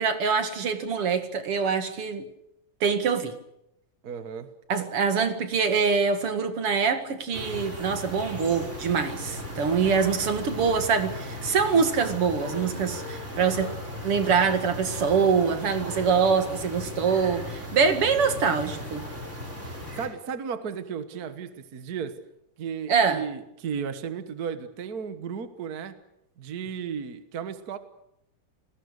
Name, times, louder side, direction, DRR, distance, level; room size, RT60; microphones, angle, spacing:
voice 1, 0.0-2.3 2.8-3.4 4.7-13.7 14.0-19.0 22.9-23.2, right 5 dB, 45° right, 8 dB, 2.6 m, -24 dB
voice 2, 4.0-4.5 20.0-22.2 22.6-26.0 26.4-27.8, right 7 dB, 65° right, 10 dB, 0.9 m, -34 dB
sound 1, 7.3-20.1, left 1 dB, 20° right, 5.6 m, -37 dB
29.5 x 20.0 x 6.6 m, 0.81 s
omnidirectional pair, 3.9 m